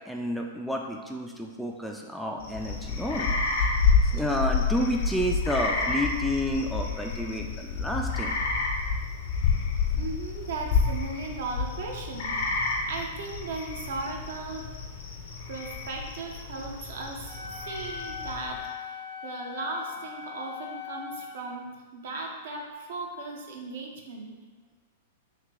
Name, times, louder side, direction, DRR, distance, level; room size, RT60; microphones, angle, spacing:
voice 1, 0.1-3.3 4.1-8.4, equal, ahead, 0 dB, 0.3 m, -30 dB
sound 1, 2.4-18.6, left 4 dB, 60° left, 0.6 m, -29 dB
voice 2, 9.9-14.7 15.5-24.3, right 3 dB, 60° right, 0 dB, 0.6 m, -37 dB
Wind instrument woodwind instrument, 17.2-21.5, left 7 dB, 80° right, 1.0 m, -39 dB
3.2 x 2.8 x 3.5 m, 1.4 s
figure-of-eight pair, 100°, 0 cm